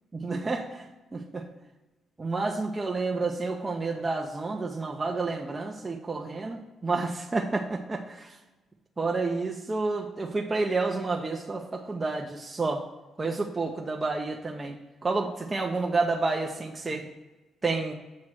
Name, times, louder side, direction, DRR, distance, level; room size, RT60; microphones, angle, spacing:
voice 1, 0.1-0.8 1.1-1.4 2.2-8.3 9.0-12.8 13.2-14.8 15.0-17.1 17.6-17.9, right 3 dB, 25° right, 1 dB, 0.6 m, -30 dB
7.4 x 3.2 x 6.0 m, 1.1 s
cardioid pair, 90°, 0 cm